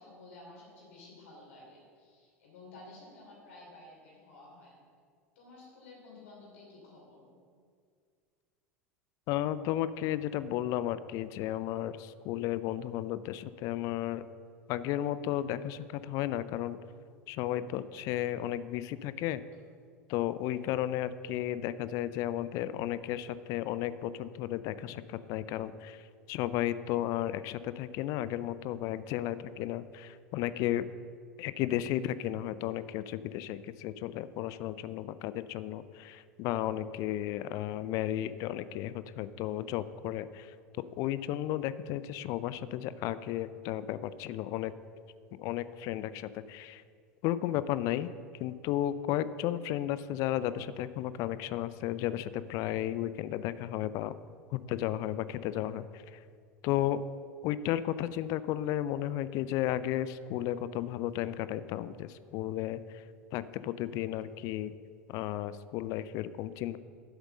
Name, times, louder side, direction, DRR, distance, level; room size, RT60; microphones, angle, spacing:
voice 1, 0.0-4.8 5.3-7.4, left 2 dB, 65° left, -2 dB, 3.0 m, -52 dB
voice 2, 9.3-14.2 14.7-16.8 17.3-19.4 20.1-26.0 26.3-30.9 31.4-40.5 41.0-44.7 45.4-46.8 47.2-48.1 48.4-54.1 54.5-56.2 56.6-57.0 57.4-63.0 63.3-64.7 65.1-66.8, left 12 dB, 45° left, 15 dB, 0.4 m, -33 dB
8.0 x 7.9 x 6.5 m, 2.1 s
figure-of-eight pair, 75°, 8 cm